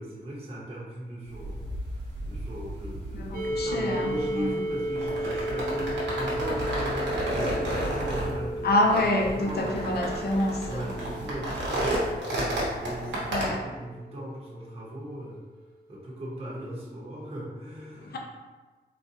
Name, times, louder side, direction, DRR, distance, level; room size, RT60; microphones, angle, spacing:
voice 1, 0.0-9.8 10.7-15.4 15.9-18.2, right 1 dB, 35° right, -6 dB, 0.9 m, -38 dB
sound 1, 1.3-13.5, right 1 dB, 85° right, 1.0 m, -32 dB
voice 2, 3.1-4.5 8.6-10.8 13.3-13.7 18.1-18.2, left 1 dB, 65° left, 1 dB, 0.6 m, -27 dB
sound 2, 3.3-15.0, right 1 dB, 55° right, 0.4 m, -35 dB
3.9 x 2.2 x 2.7 m, 1.3 s
wide cardioid pair, 80°, 18 cm